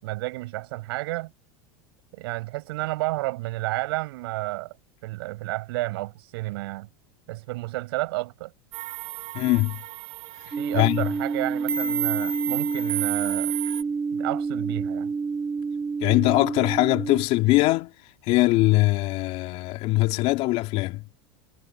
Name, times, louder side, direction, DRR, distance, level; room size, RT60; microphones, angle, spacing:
voice 1, 0.0-1.3 2.1-4.8 5.0-6.9 7.3-8.5 10.6-13.5 14.1-15.1, right 21 dB, 70° right, 7.1 m, -31 dB
sound 1, 8.7-13.8, right 9 dB, 45° right, 3.8 m, -32 dB
voice 2, 9.3-9.8 10.7-11.1 16.0-17.9 18.2-21.0, left 19 dB, 55° left, 2.8 m, -22 dB
sound 2, 10.5-17.2, right 5 dB, 15° right, 1.5 m, -28 dB
supercardioid pair, 115°, 13 cm